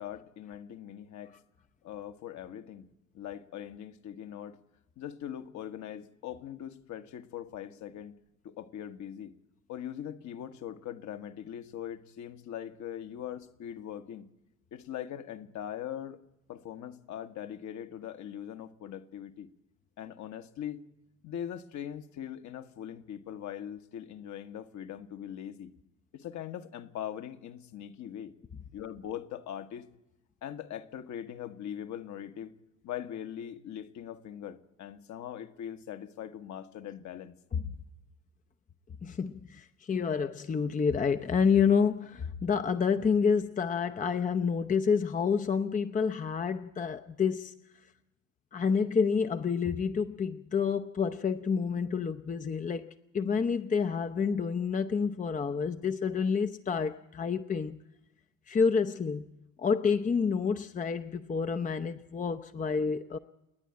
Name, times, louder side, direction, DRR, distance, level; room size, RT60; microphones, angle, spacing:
voice 1, 0.0-1.3 1.8-2.9 3.1-4.6 5.0-8.1 8.4-9.3 9.7-14.3 14.7-16.2 16.5-19.5 20.0-20.8 21.2-25.7 26.1-28.3 28.7-29.9 30.4-32.5 32.8-37.3, left 10 dB, 45° left, 1.4 m, -41 dB
voice 2, 39.0-47.5 48.5-52.9 53.1-57.8 58.5-59.3 59.6-63.2, left 6 dB, 20° left, 0.8 m, -28 dB
29.0 x 10.5 x 8.8 m
figure-of-eight pair, 60°, 39 cm